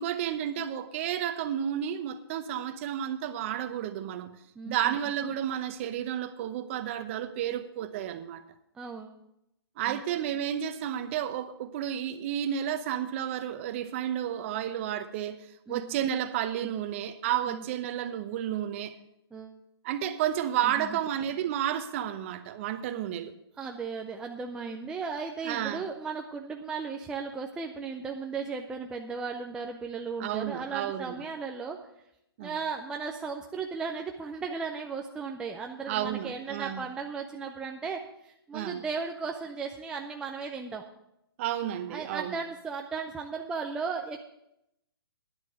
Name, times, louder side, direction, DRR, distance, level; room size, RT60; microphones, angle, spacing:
voice 1, 0.0-4.4 4.6-8.4 9.8-15.4 15.7-18.9 19.8-23.3 25.4-25.8 30.2-31.2 32.4-32.6 35.9-36.8 38.5-38.8 41.4-42.4, right 10 dB, 30° right, 0.8 m, -31 dB
voice 2, 4.6-4.9 8.7-9.2 9.9-10.0 15.7-15.9 16.6-16.7 17.5-17.6 19.3-19.6 20.6-21.0 23.6-31.8 32.4-40.8 41.9-44.3, right 5 dB, 5° right, 0.4 m, -36 dB
10.5 x 8.2 x 7.6 m
hypercardioid pair, 155°, 13 cm